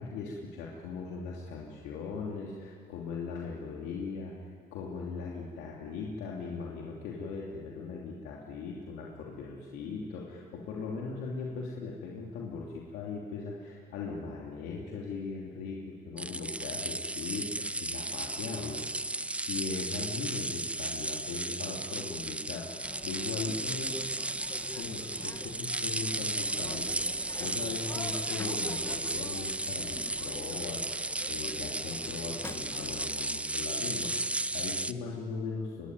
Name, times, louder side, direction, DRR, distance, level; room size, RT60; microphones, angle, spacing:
voice 1, 0.0-24.0 24.7-35.9, left 4 dB, 90° left, -3 dB, 2.9 m, -39 dB
sound 1, 16.2-34.9, right 2 dB, 5° right, 0.6 m, -34 dB
sound 2, 22.8-33.1, left 2 dB, 15° left, 1.6 m, -47 dB
25.0 x 20.5 x 9.5 m, 2.2 s
cardioid pair, 110°, 17 cm